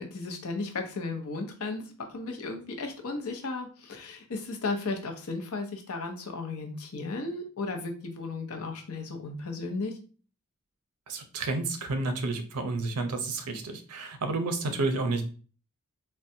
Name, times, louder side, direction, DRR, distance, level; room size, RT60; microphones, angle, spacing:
voice 1, 0.0-10.0, left 3 dB, 70° left, 4 dB, 0.7 m, -35 dB
voice 2, 11.1-15.2, right 3 dB, 90° right, 6 dB, 0.6 m, -30 dB
3.9 x 2.2 x 2.7 m, 0.38 s
head